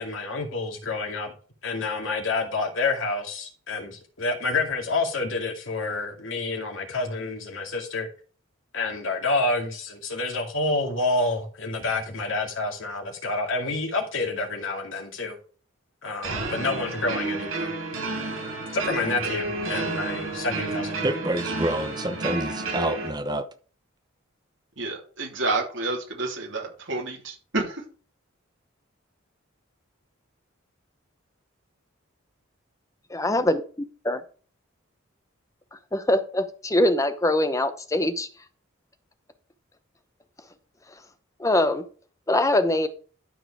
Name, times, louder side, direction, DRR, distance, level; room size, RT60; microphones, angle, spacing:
voice 1, 0.0-1.3 1.6-8.1 8.7-15.4 16.0-17.7 18.7-21.0, left 3 dB, 75° left, 2.4 m, -28 dB
sound 1, 16.2-23.1, right 3 dB, 85° right, 5.3 m, -31 dB
voice 2, 21.0-23.5, right 1 dB, 20° right, 0.9 m, -28 dB
voice 3, 24.8-27.8, right 3 dB, 65° right, 3.2 m, -29 dB
voice 4, 33.1-33.6 34.0-34.2 35.9-38.3 41.4-41.8 42.3-42.9, left 1 dB, 15° left, 0.9 m, -22 dB
12.5 x 4.7 x 4.9 m
head